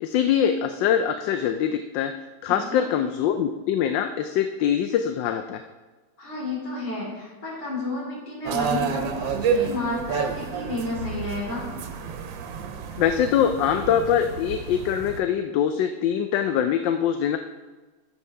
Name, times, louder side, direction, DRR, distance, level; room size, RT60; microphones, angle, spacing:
voice 1, 0.0-2.1 2.4-5.6 13.0-17.4, left 9 dB, 80° left, 7 dB, 1.2 m, -23 dB
voice 2, 2.5-2.8 6.2-11.7, left 2 dB, 65° left, -5 dB, 4.1 m, -31 dB
sound 1, 8.4-15.2, right 6 dB, 85° right, 1.5 m, -30 dB
12.0 x 7.5 x 3.3 m, 1.2 s
omnidirectional pair, 2.0 m